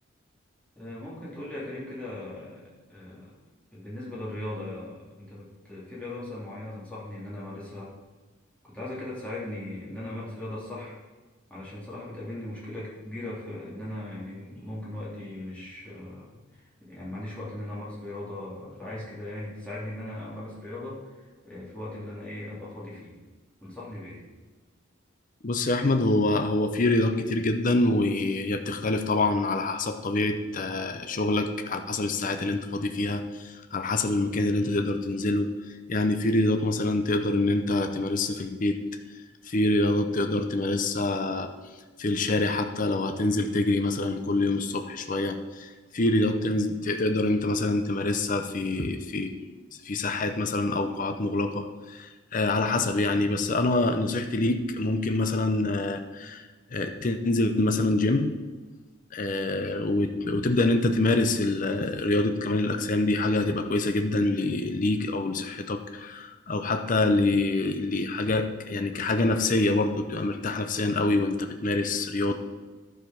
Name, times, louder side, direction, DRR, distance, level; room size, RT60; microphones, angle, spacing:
voice 1, 0.7-3.3 3.7-7.9 8.6-11.0 11.5-23.1 23.6-24.2, left 1 dB, 5° left, -8 dB, 2.8 m, -38 dB
voice 2, 25.4-35.5 35.9-38.8 39.5-41.5 42.0-49.3 49.8-58.4 59.1-72.3, left 2 dB, 40° left, 7 dB, 0.6 m, -26 dB
11.5 x 4.9 x 5.9 m, 1.3 s
head